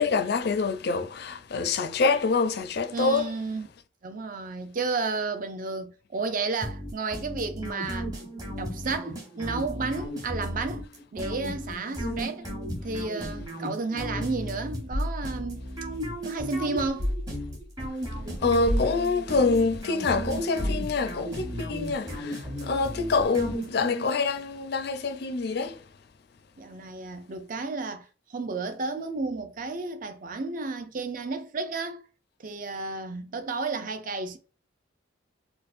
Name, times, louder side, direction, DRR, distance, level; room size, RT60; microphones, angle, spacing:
voice 1, 0.0-3.3 12.0-12.2 18.4-25.9, left 4 dB, 55° left, 0.4 m, -26 dB
voice 2, 2.9-3.7 4.0-8.1 8.6-12.5 12.8-15.6 16.2-17.1 26.6-32.0 32.4-34.4, right 3 dB, 45° right, 0.5 m, -32 dB
sound 1, 6.6-24.1, equal, 20° right, 0.9 m, -35 dB
sound 2, 14.9-16.3 17.0-17.8 18.6-19.5 20.6-21.4, left 1 dB, 80° right, 1.6 m, -33 dB
4.4 x 2.1 x 2.5 m
head